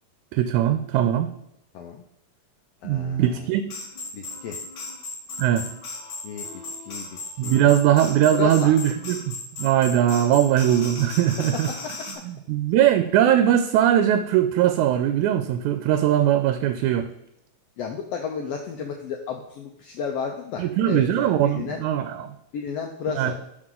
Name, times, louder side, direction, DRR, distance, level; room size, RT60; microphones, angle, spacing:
voice 1, 0.3-1.3 2.8-3.6 5.4-5.7 7.4-11.7 12.2-17.1 20.6-22.3 23.2-23.3, right 11 dB, 85° right, 9 dB, 1.9 m, -20 dB
voice 2, 1.7-2.0 2.8-3.5 4.1-4.6 6.2-7.7 8.3-8.7 11.7-12.2 17.8-21.8 22.5-23.3, left 6 dB, 75° left, 3 dB, 1.5 m, -33 dB
sound 1, 3.7-12.1, left 3 dB, 45° left, 2.1 m, -37 dB
11.0 x 4.5 x 3.7 m, 0.78 s
omnidirectional pair, 3.4 m